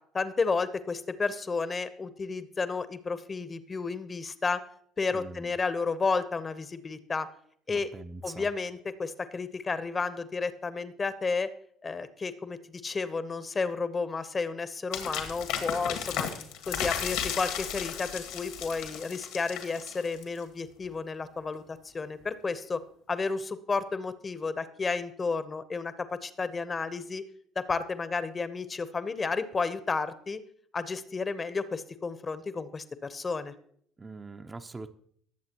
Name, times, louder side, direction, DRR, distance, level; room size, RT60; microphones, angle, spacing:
voice 1, 0.1-4.6 5.0-7.3 7.7-7.9 8.2-11.5 11.8-12.6 12.8-16.3 16.7-22.8 23.1-25.9 26.2-27.2 27.7-30.4 30.7-33.5, left 4 dB, 30° left, 13 dB, 1.0 m, -32 dB
voice 2, 5.1-5.5 7.7-8.5 34.0-34.9, right 3 dB, 25° right, 6 dB, 0.8 m, -43 dB
sound 1, 14.9-20.4, left 8 dB, 75° left, 1.9 m, -34 dB
19.5 x 7.5 x 3.0 m, 0.64 s
hypercardioid pair, 60°, 0 cm